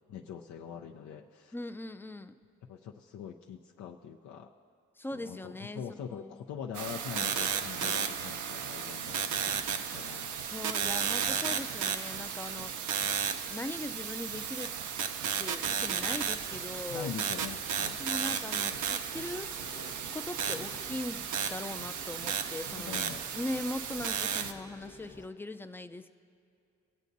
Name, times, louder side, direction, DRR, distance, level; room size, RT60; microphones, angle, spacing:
voice 1, 0.1-1.5 2.7-4.5 5.1-10.3 16.9-18.0 20.5-20.7 22.8-23.2, left 8 dB, 85° left, 0 dB, 0.5 m, -43 dB
voice 2, 1.5-2.3 5.0-6.4 10.5-13.1 13.5-14.7 15.4-17.1 17.8-19.5 20.1-26.1, left 1 dB, 10° left, 10 dB, 0.4 m, -40 dB
sound 1, 6.7-24.5, right 7 dB, 85° right, 0.6 m, -34 dB
sound 2, 15.6-25.3, left 3 dB, 40° left, 1.0 m, -54 dB
21.5 x 8.2 x 2.6 m, 2.5 s
cardioid pair, 85°, 29 cm